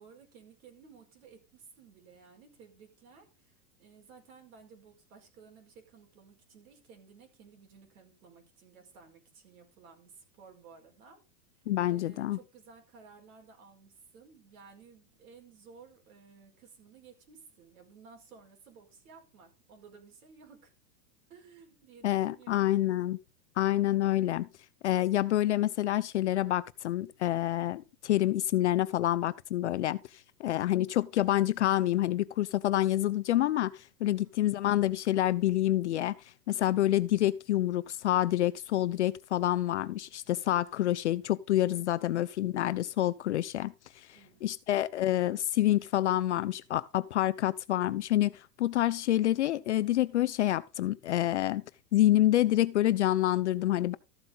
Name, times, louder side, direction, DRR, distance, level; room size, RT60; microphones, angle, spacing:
voice 1, 0.0-11.2 11.9-20.7 21.3-22.8 34.0-34.3 41.7-42.2 44.1-44.4, right 5 dB, 60° right, 5.1 m, -56 dB
voice 2, 11.7-12.4 22.0-23.2 23.6-24.5 24.8-30.0 30.4-36.2 36.5-43.7 44.4-51.6 51.9-53.9, left 14 dB, 45° left, 0.5 m, -27 dB
14.0 x 7.7 x 4.0 m
supercardioid pair, 175°, 48 cm